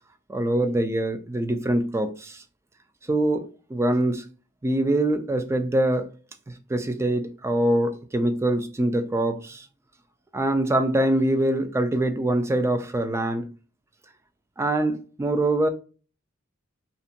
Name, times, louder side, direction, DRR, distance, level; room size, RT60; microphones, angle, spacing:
voice 1, 0.3-2.4 3.1-3.5 3.7-4.2 4.6-6.1 6.7-9.6 10.3-13.5 14.6-15.7, right 1 dB, 15° right, 0.3 m, -24 dB
2.5 x 2.1 x 2.7 m
head